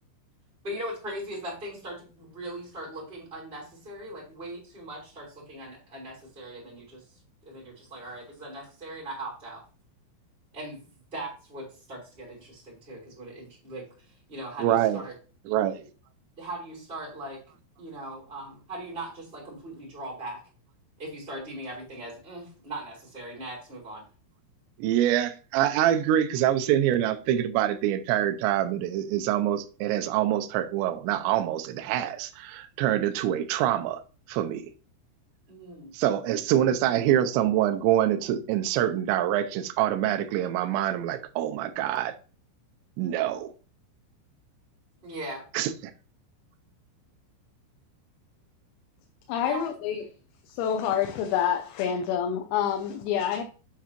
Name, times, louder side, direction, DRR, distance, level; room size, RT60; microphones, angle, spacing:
voice 1, 0.6-9.6 10.5-15.2 16.4-17.4 17.8-20.4 21.0-24.0 35.5-35.9 45.0-45.4 49.4-49.7, right 1 dB, 15° right, 2.8 m, -39 dB
voice 2, 14.6-15.0 15.5-15.9 24.8-34.0 34.3-34.7 35.9-42.2 43.0-43.5 45.5-45.7, right 11 dB, 90° right, 2.5 m, -25 dB
voice 3, 49.3-50.0 50.5-53.4, left 9 dB, 90° left, 3.5 m, -27 dB
7.9 x 7.3 x 2.9 m
omnidirectional pair, 5.9 m